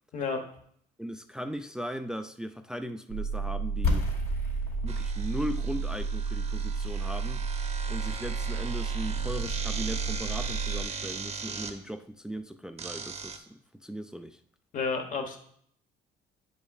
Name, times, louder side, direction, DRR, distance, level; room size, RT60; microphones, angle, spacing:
voice 1, 1.0-4.1 4.8-7.4 7.9-14.4, equal, 5° right, 0.3 m, -38 dB
sound 1, 3.1-10.8, right 5 dB, 70° right, 0.6 m, -32 dB
sound 2, 3.8-9.6, left 3 dB, 65° left, 2.8 m, -35 dB
sound 3, 4.9-11.7 12.8-13.4, right 5 dB, 40° right, 0.8 m, -39 dB
voice 2, 14.7-15.4, left 4 dB, 50° left, 1.1 m, -30 dB
9.4 x 5.2 x 2.3 m
cardioid pair, 110°, 17 cm